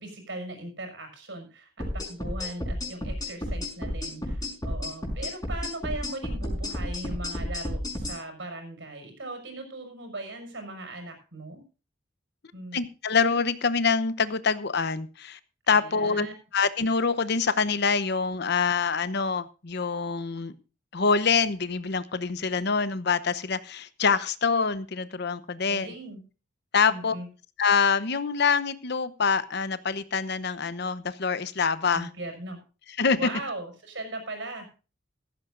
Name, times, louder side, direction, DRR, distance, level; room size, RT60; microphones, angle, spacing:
voice 1, 0.0-11.6 12.5-12.8 15.7-16.3 25.7-26.2 26.9-27.3 31.9-32.6 33.1-34.7, right 2 dB, 65° right, 5 dB, 6.0 m, -39 dB
sound 1, 1.8-8.2, left 1 dB, 20° left, 5.3 m, -32 dB
voice 2, 12.7-15.4 15.7-16.3 16.5-20.5 20.9-25.9 26.7-27.2 27.6-32.1 33.0-33.3, left 5 dB, 55° left, 13 dB, 0.9 m, -25 dB
16.0 x 14.5 x 2.6 m, 0.34 s
head